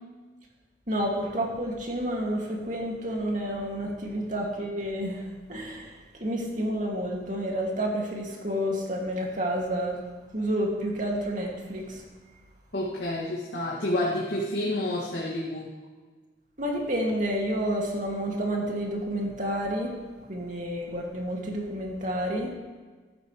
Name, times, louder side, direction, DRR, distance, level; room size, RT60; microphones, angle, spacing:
voice 1, 0.9-10.0 10.3-12.0 16.6-19.9 20.3-22.5, equal, 45° right, -1 dB, 2.4 m, -30 dB
voice 2, 12.7-15.7, left 1 dB, 90° left, -6 dB, 2.3 m, -29 dB
15.0 x 13.5 x 3.3 m, 1.4 s
head